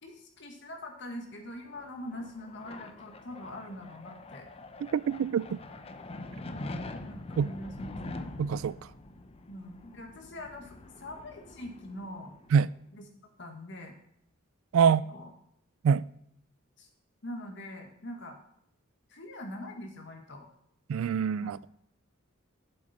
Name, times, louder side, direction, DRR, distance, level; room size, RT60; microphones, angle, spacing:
voice 1, 0.0-4.5 6.9-8.3 9.5-12.3 12.9-13.0 13.4-14.0 14.8-15.3 16.8-16.9 17.2-18.4 19.1-20.5 21.4-21.5, left 1 dB, 60° left, 1.6 m, -43 dB
sound 1, 1.5-12.8, left 2 dB, 30° left, 0.5 m, -44 dB
voice 2, 4.8-5.6 7.4-7.5 8.4-8.8 12.5-12.7 14.7-15.0 15.8-16.1 20.9-21.6, right 7 dB, 75° right, 0.3 m, -25 dB
7.8 x 7.7 x 4.2 m
head